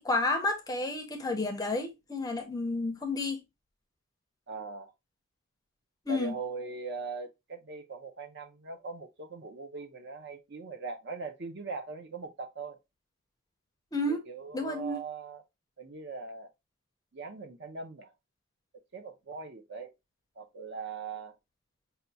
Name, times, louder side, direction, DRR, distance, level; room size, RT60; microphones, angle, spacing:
voice 1, 0.0-3.4 6.1-6.3 13.9-14.2 14.5-15.0, left 2 dB, 15° left, 0.5 m, -31 dB
voice 2, 4.5-4.9 6.1-12.8 14.1-15.4 15.8-16.5 17.1-18.1 18.9-19.9 20.4-21.4, right 4 dB, 50° right, 0.6 m, -40 dB
5.5 x 2.3 x 2.6 m
head